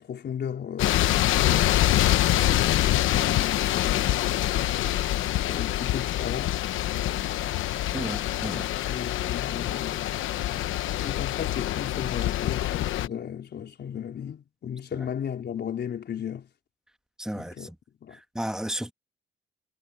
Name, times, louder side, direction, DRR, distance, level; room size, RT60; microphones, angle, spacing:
voice 1, 0.0-2.1 2.4-4.3 5.5-6.6 8.5-10.2 10.9-16.5 17.3-17.7 18.0-18.2, left 8 dB, 60° left, 4.1 m, -35 dB
sound 1, 0.8-13.1, left 14 dB, 80° left, 1.0 m, -25 dB
voice 2, 7.9-8.7 10.5-10.7 15.0-15.1 17.2-17.8 18.1-18.9, right 1 dB, 5° right, 1.6 m, -34 dB
cardioid pair, 90°, 20 cm